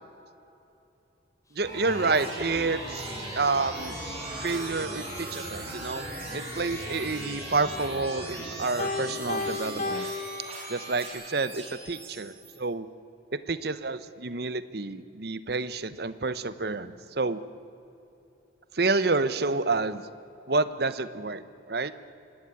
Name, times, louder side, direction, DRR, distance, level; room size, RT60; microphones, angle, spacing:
sound 1, 1.5-11.1, left 2 dB, 15° left, 5.1 m, -50 dB
voice 1, 1.5-4.0 4.4-10.1 10.7-12.9 13.3-17.4 18.7-20.0 20.5-21.9, right 3 dB, 55° right, 14 dB, 0.9 m, -29 dB
sound 2, 1.6-12.5, right 1 dB, 30° right, 7.6 m, -38 dB
Piano, 8.8-11.2, left 4 dB, 40° left, 1.3 m, -34 dB
25.5 x 18.0 x 9.7 m, 2.9 s
head